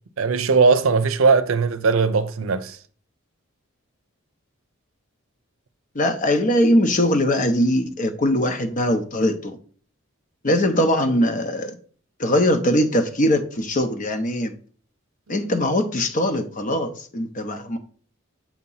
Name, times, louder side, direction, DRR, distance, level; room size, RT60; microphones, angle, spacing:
voice 1, 0.2-2.8, right 4 dB, 75° right, 0.6 m, -19 dB
voice 2, 5.9-9.6 10.4-11.7 12.2-14.5 15.3-17.8, left 1 dB, 40° left, 0.7 m, -21 dB
7.1 x 2.8 x 5.5 m
head